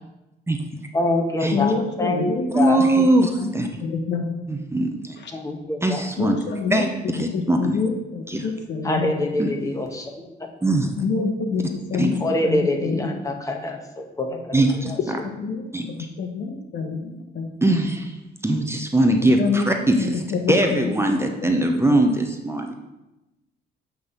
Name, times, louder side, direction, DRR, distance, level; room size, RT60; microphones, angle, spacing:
voice 1, 0.9-2.8 5.3-6.0 8.8-10.0 10.4-10.5 12.2-14.5, left 1 dB, 15° left, 2 dB, 1.2 m, -25 dB
voice 2, 1.5-2.5 3.0-3.5 3.8-4.2 5.2-5.3 6.2-9.1 11.0-13.1 15.2-17.8 19.4-19.7 20.0-21.6, left 5 dB, 65° left, 4 dB, 1.0 m, -27 dB
voice 3, 2.5-3.7 4.5-5.2 5.8-6.4 6.7-7.8 8.3-8.5 9.4-9.5 10.6-10.9 12.0-12.1 14.5-15.2 15.7-15.9 17.6-18.1 18.4-20.2 20.5-22.7, right 1 dB, 15° right, 3 dB, 0.7 m, -21 dB
7.8 x 3.5 x 5.5 m, 1.0 s
cardioid pair, 90°, 20 cm